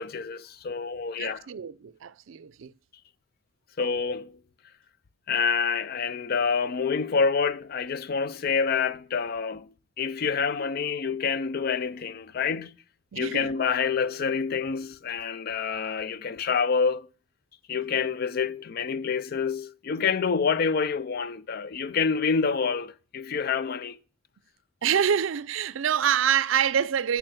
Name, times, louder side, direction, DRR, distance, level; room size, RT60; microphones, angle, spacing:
voice 1, 0.0-1.5 3.8-4.4 5.3-12.7 13.2-17.1 17.7-24.0, left 5 dB, 50° left, 0.4 m, -27 dB
voice 2, 1.2-2.7 13.1-13.5 24.8-27.2, right 8 dB, 70° right, 0.4 m, -26 dB
8.9 x 5.6 x 6.2 m
head